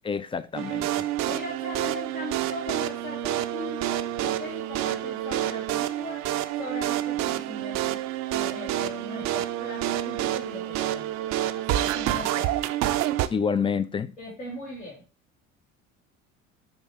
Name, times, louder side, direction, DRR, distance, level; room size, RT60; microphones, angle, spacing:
voice 1, 0.0-1.1 13.3-14.1, left 6 dB, 15° left, 0.4 m, -28 dB
sound 1, 0.5-13.3, right 13 dB, 45° right, 0.6 m, -28 dB
voice 2, 1.2-6.3 6.5-8.0 8.3-12.5 14.2-15.0, left 1 dB, 75° left, 2.4 m, -39 dB
10.5 x 3.5 x 3.1 m
figure-of-eight pair, 60°, 39 cm